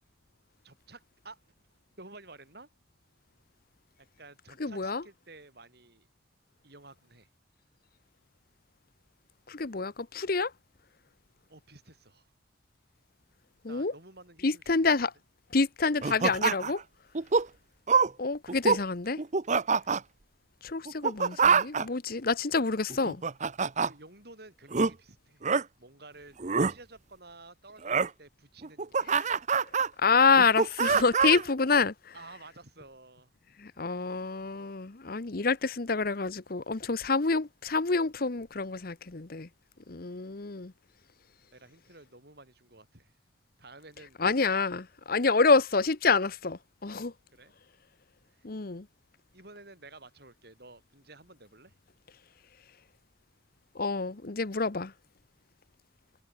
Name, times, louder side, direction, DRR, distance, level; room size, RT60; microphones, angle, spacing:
voice 1, 0.6-1.4 2.0-2.7 4.2-6.1 6.6-7.3 11.5-12.3 13.6-15.0 23.9-25.4 25.8-26.4 26.7-29.1 32.1-33.3 41.5-43.2 43.6-44.2 47.3-47.5 48.3-48.5 49.3-51.7, right 2 dB, 55° right, 7.3 m, -52 dB
voice 2, 4.6-5.0 9.5-10.5 13.6-13.9 14.4-15.1 15.5-16.8 18.2-19.2 20.6-23.2 30.0-31.9 33.6-39.5 39.9-40.7 44.2-47.1 48.4-48.8 53.8-54.9, left 4 dB, 50° left, 0.9 m, -27 dB
sound 1, 16.0-16.8 17.1-17.5 17.9-18.1 18.5-18.8 19.2-20.0 20.9-21.8 22.9-23.9 24.7-24.9 25.4-25.6 26.4-26.7 27.8-28.1 28.6-29.9 30.4-31.5, right 5 dB, 40° right, 0.7 m, -25 dB
head